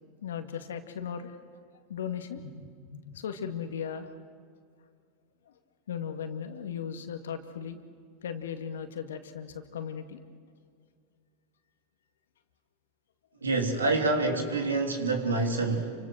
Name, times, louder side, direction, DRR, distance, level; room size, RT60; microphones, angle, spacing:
voice 1, 0.2-1.4 1.9-4.1 5.9-7.8 8.2-10.2, left 7 dB, 75° left, 7 dB, 2.1 m, -37 dB
voice 2, 13.4-15.9, right 3 dB, 90° right, 4 dB, 3.2 m, -27 dB
28.5 x 25.5 x 6.5 m, 2.2 s
hypercardioid pair, 90°, 0 cm